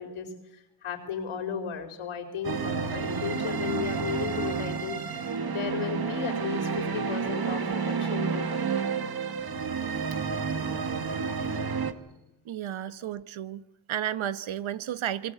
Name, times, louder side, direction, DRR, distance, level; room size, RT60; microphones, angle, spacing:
voice 1, 0.0-8.7, left 6 dB, 85° left, 4.5 m, -35 dB
sound 1, 2.4-11.9, right 5 dB, 50° right, 2.0 m, -30 dB
voice 2, 12.4-13.6 13.9-15.3, right 11 dB, 75° right, 1.2 m, -32 dB
26.0 x 23.0 x 8.2 m
cardioid pair, 60°, 48 cm